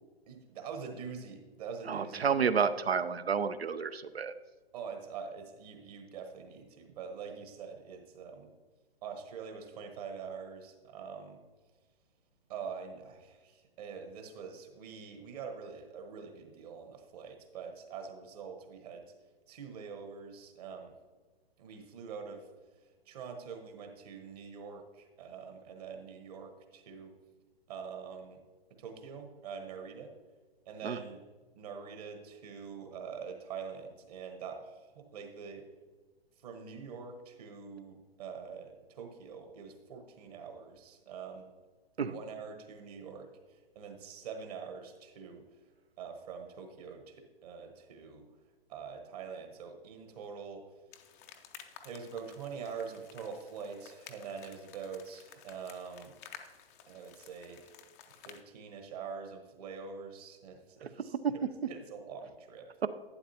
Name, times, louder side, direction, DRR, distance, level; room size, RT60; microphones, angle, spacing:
voice 1, 0.3-2.3 4.7-8.5 9.0-11.4 12.5-19.1 19.5-20.9 21.6-22.5 23.0-27.2 27.7-28.4 28.8-30.1 30.7-31.2 31.5-35.7 36.4-41.5 42.1-45.4 46.0-48.3 48.7-50.7 51.8-56.2 56.9-57.8 58.2-62.7, right 6 dB, 40° right, 5 dB, 1.2 m, -45 dB
voice 2, 1.9-4.3 30.8-31.0 42.0-42.1 61.2-61.3, right 6 dB, 80° right, 13 dB, 0.7 m, -30 dB
sound 1, 50.9-58.4, left 9 dB, 15° left, 0.4 m, -54 dB
11.0 x 9.2 x 2.8 m, 1.3 s
figure-of-eight pair, 125°, 30 cm